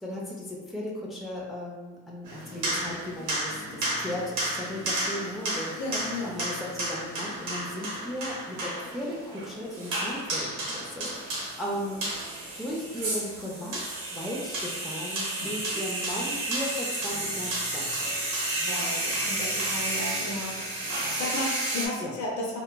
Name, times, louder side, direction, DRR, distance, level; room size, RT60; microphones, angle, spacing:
voice 1, 0.0-5.7 6.2-10.5 11.0-12.1 12.6-17.9 22.0-22.1, left 1 dB, ahead, -4 dB, 0.4 m, -36 dB
sound 1, 2.3-21.9, right 1 dB, 90° right, 0.9 m, -32 dB
voice 2, 5.8-6.4 15.4-15.5 18.6-22.6, left 2 dB, 70° left, -4 dB, 0.7 m, -34 dB
2.8 x 2.2 x 2.2 m, 1.2 s
cardioid pair, 90°, 30 cm